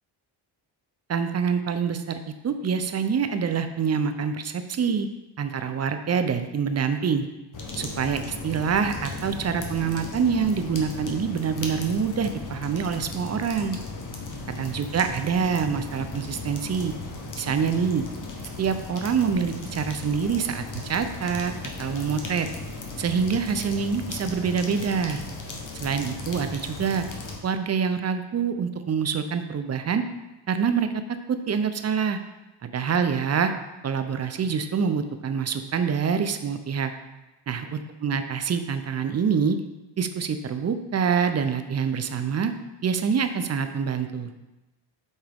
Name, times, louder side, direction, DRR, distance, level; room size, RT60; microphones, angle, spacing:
voice 1, 1.1-2.2 2.4-5.1 5.4-7.3 7.8-13.8 14.5-16.9 17.4-18.0 18.6-21.5 21.8-22.5 23.0-25.2 25.7-27.0 27.4-30.0 30.5-30.9 31.3-32.2 32.6-33.5 33.8-36.9 37.5-39.6 40.0-42.5 42.8-44.3, right 6 dB, 35° right, 9 dB, 0.5 m, -26 dB
sound 1, 7.5-27.4, left 3 dB, 40° left, 1.1 m, -36 dB
8.0 x 3.5 x 3.5 m, 1.0 s
cardioid pair, 85°, 49 cm